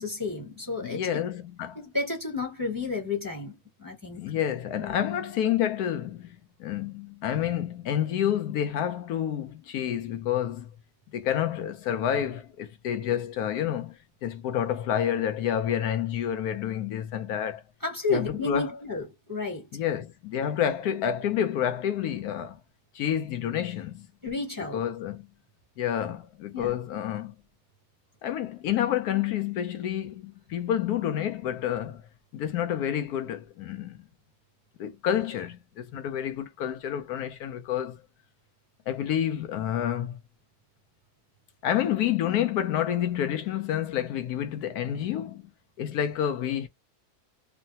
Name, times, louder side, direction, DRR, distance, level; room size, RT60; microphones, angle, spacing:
voice 1, 0.0-1.2 1.7-4.3 4.8-5.0 17.8-19.7 24.2-24.8 26.5-26.8, left 3 dB, 15° right, 1.2 m, -32 dB
voice 2, 0.8-1.8 4.2-10.7 11.1-17.6 18.1-18.8 19.7-22.6 22.9-24.1 24.7-25.3 25.8-27.4 28.2-32.0 32.3-34.0 34.8-38.0 38.9-40.2 41.6-45.4 45.8-46.7, left 10 dB, 80° left, 1.1 m, -29 dB
3.2 x 2.1 x 2.7 m
omnidirectional pair, 1.6 m